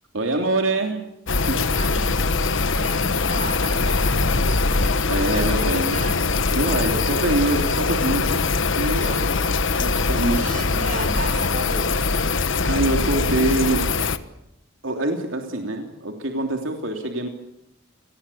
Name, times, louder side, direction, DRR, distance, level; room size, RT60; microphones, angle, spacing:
voice 1, 0.1-1.1 1.3-1.7 5.1-6.0 6.5-8.4 8.7-10.4 12.6-13.9 14.8-17.3, right 2 dB, 65° right, 3 dB, 3.1 m, -25 dB
sound 1, 1.3-14.2, left 3 dB, 65° left, 1.3 m, -22 dB
voice 2, 1.7-2.3 2.7-5.0 5.6-6.3 10.2-12.1, right 2 dB, 40° right, 6 dB, 4.4 m, -35 dB
29.0 x 20.0 x 8.6 m, 0.83 s
head